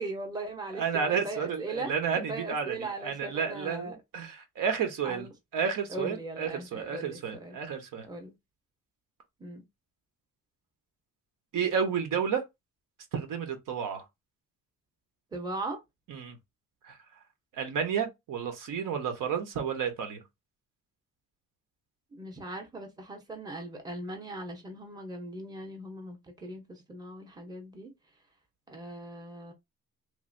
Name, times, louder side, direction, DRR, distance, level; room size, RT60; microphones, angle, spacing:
voice 1, 0.0-1.9 2.3-4.0 5.0-5.3 5.9-7.6 8.1-8.3 9.4-9.6 15.3-15.8 22.1-27.9 28.7-29.5, right 2 dB, 10° right, 0.9 m, -39 dB
voice 2, 0.8-5.3 5.5-8.1 11.5-12.4 13.1-14.0 16.1-16.4 16.8-17.0 17.5-20.2, right 7 dB, 70° right, 1.1 m, -31 dB
3.2 x 2.7 x 2.6 m
cardioid pair, 125°, 34 cm